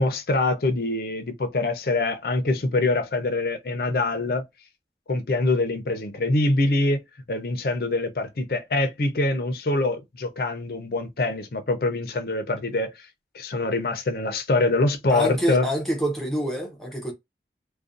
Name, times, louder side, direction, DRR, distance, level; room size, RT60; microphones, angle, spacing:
voice 1, 0.0-4.4 5.1-7.0 7.3-12.9 13.3-15.7, left 2 dB, 55° left, 0.5 m, -24 dB
voice 2, 15.1-17.1, equal, ahead, 0.6 m, -26 dB
2.5 x 2.2 x 2.4 m
head